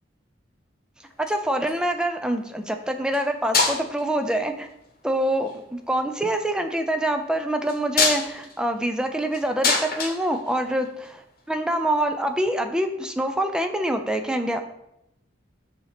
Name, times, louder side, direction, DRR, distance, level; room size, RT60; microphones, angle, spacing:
sound 1, 1.1-1.9 3.1-3.2 3.5-4.2 5.1-5.6 7.7-11.1 12.4-12.5, left 4 dB, 50° left, 1.0 m, -26 dB
voice 1, 1.2-4.7 5.0-14.6, right 1 dB, 5° right, 6 dB, 0.4 m, -25 dB
6.7 x 2.8 x 5.8 m, 0.83 s
head